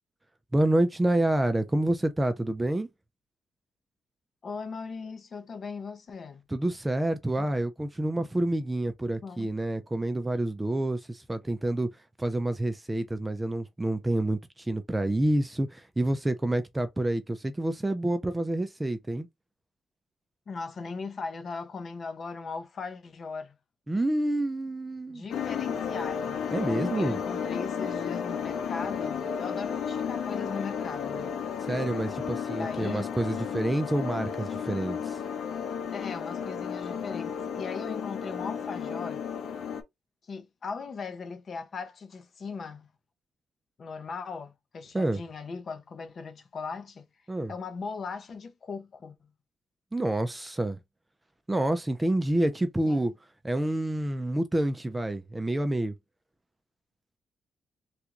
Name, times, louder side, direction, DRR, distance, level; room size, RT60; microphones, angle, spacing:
voice 1, 0.5-2.9 6.5-11.9 12.2-19.3 23.9-25.2 26.5-27.2 31.7-35.2 44.9-45.2 47.3-47.5 49.9-50.8 51.5-53.1 53.4-55.9, right 1 dB, 10° right, 0.4 m, -28 dB
voice 2, 4.4-6.4 9.2-9.5 20.5-23.5 25.1-31.3 32.5-33.1 35.9-39.3 40.2-42.9 43.8-47.1 47.5-49.2 52.9-53.1, left 4 dB, 40° left, 0.7 m, -38 dB
sound 1, 25.3-39.8, left 7 dB, 80° left, 0.6 m, -33 dB
3.4 x 2.5 x 2.9 m
cardioid pair, 150°, 0 cm